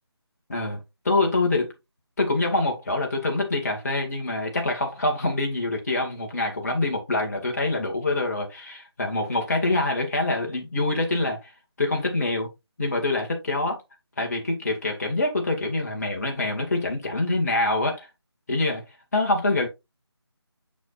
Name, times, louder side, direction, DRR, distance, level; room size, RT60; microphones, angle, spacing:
voice 1, 1.0-1.7 2.2-11.5 11.8-12.5 12.8-13.8 14.2-18.1 18.5-18.8 19.1-19.7, left 2 dB, 35° left, 1.8 m, -25 dB
6.3 x 6.2 x 2.5 m
figure-of-eight pair, 160°, 14 cm